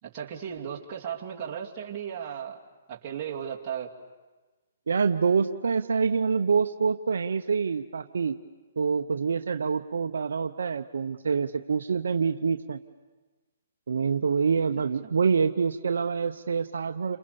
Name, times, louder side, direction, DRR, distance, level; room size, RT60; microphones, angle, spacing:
voice 1, 0.0-2.6 2.9-3.9 15.0-15.1, right 8 dB, 30° right, -4 dB, 2.8 m, -35 dB
voice 2, 4.9-8.4 8.8-12.8 13.9-17.2, right 5 dB, 80° right, 7 dB, 0.8 m, -26 dB
29.5 x 27.0 x 7.0 m, 1.3 s
hypercardioid pair, 145°, 0 cm